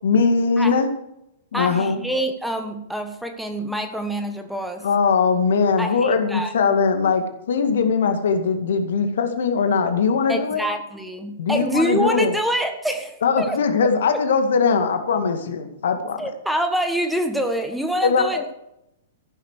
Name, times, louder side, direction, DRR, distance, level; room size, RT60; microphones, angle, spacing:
voice 1, 0.0-0.9 1.5-2.0 4.8-10.6 11.4-12.3 13.2-16.2 18.0-18.4, left 5 dB, 65° left, 7 dB, 2.1 m, -20 dB
voice 2, 1.5-4.9 5.8-6.5 10.3-13.6 16.2-18.5, right 1 dB, ahead, 6 dB, 1.5 m, -26 dB
15.0 x 11.0 x 4.8 m, 0.82 s
figure-of-eight pair, 110°, 0 cm